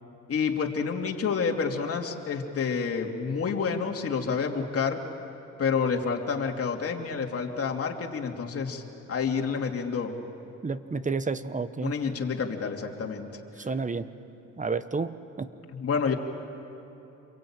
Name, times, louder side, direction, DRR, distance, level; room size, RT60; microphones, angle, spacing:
voice 1, 0.3-5.0 5.6-8.8 9.1-10.1 11.8-13.3 15.7-16.1, left 5 dB, 50° left, 2 dB, 3.0 m, -29 dB
voice 2, 10.6-11.9 13.6-14.1 14.6-15.5, right 4 dB, 25° right, 12 dB, 1.1 m, -30 dB
29.0 x 23.0 x 9.0 m, 3.0 s
cardioid pair, 90°, 30 cm